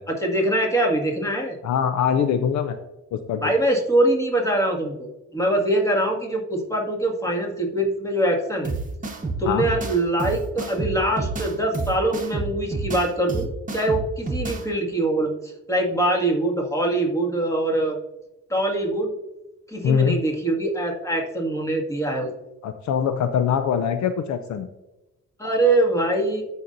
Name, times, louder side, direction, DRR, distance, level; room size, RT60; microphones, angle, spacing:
voice 1, 0.1-1.6 3.4-8.7 9.4-18.0 18.5-19.1 19.7-22.3 25.4-26.4, right 1 dB, 10° left, 0 dB, 2.0 m, -23 dB
voice 2, 1.6-2.8 3.1-3.5 9.5-9.7 19.8-20.2 22.6-24.7, left 7 dB, 70° left, 10 dB, 0.6 m, -23 dB
sound 1, 8.6-14.6, right 3 dB, 25° right, 1.3 m, -29 dB
14.5 x 5.6 x 2.6 m, 0.98 s
cardioid pair, 90°, 30 cm